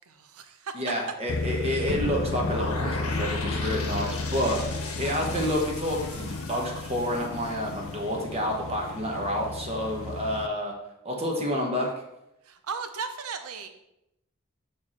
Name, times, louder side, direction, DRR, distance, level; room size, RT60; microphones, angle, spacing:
voice 1, 0.1-0.8 1.7-2.0 12.4-13.7, right 5 dB, 75° right, 8 dB, 0.7 m, -37 dB
voice 2, 0.7-10.7 11.0-11.9, equal, 30° right, 0 dB, 1.1 m, -29 dB
sound 1, 1.3-10.5, left 3 dB, 65° left, 0.5 m, -34 dB
sound 2, 1.9-7.9, left 2 dB, 80° left, 1.4 m, -35 dB
6.4 x 4.6 x 4.3 m, 0.85 s
head